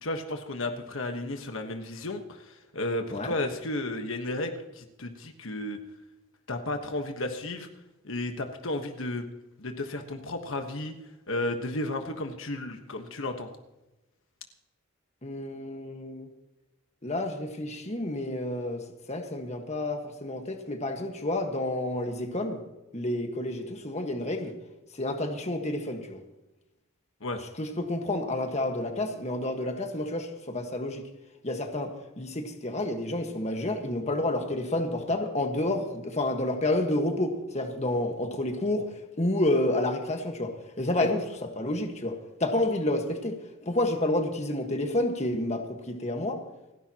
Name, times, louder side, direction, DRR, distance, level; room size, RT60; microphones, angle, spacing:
voice 1, 0.0-5.8 6.5-7.7 8.0-9.2 9.6-10.9 11.3-13.5 27.2-27.4 41.0-41.1, left 2 dB, 65° left, 5 dB, 1.3 m, -33 dB
voice 2, 15.2-16.3 17.0-22.6 22.9-24.5 25.0-26.2 27.6-31.0 31.4-38.9 39.2-46.4, left 1 dB, 30° left, 4 dB, 1.5 m, -29 dB
29.0 x 11.0 x 3.0 m, 1.0 s
head